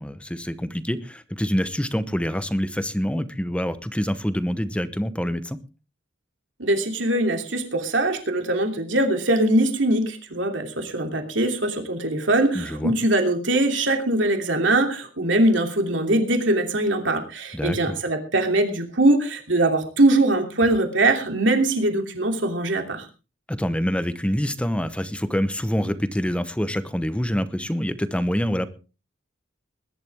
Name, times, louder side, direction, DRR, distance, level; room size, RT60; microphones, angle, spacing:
voice 1, 0.0-5.6 12.5-12.9 17.5-17.9 23.5-28.7, equal, 5° left, 12 dB, 0.9 m, -26 dB
voice 2, 6.6-23.0, right 1 dB, 70° right, 4 dB, 3.0 m, -22 dB
21.0 x 11.5 x 3.6 m, 0.33 s
head